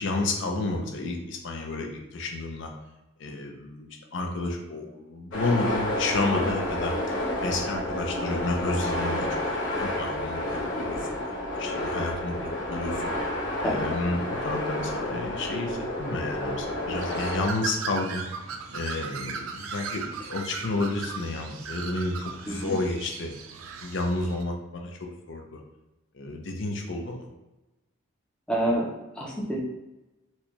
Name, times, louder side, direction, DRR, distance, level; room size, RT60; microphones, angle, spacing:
voice 1, 0.0-2.7 3.2-18.2 18.7-23.3 23.8-25.6 26.1-27.3, left 2 dB, 65° left, 2 dB, 0.5 m, -31 dB
sound 1, 5.3-17.5, left 1 dB, 85° left, 1.1 m, -30 dB
Bird, 17.0-24.4, right 5 dB, 85° right, 0.4 m, -38 dB
voice 2, 28.5-28.9 29.1-29.6, right 1 dB, 5° left, -4 dB, 0.5 m, -28 dB
4.2 x 2.2 x 2.9 m, 1.0 s
head